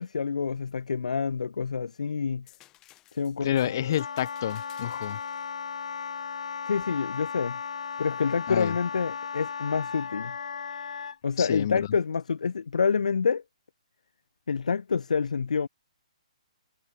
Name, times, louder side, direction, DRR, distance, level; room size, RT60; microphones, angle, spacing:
voice 1, 0.0-2.5 3.1-3.6 6.7-7.6 8.0-10.3 11.2-13.4 14.5-15.7, left 5 dB, 90° left, 0.4 m, -27 dB
sound 1, 2.5-8.1 8.6-9.6 11.6-11.8, left 16 dB, 15° left, 1.5 m, -60 dB
voice 2, 3.4-5.2 8.5-8.7 11.4-11.9, left 11 dB, 30° left, 0.4 m, -29 dB
Wind instrument woodwind instrument, 3.6-11.2, left 6 dB, 70° left, 0.8 m, -36 dB
hypercardioid pair, 170°, 4 cm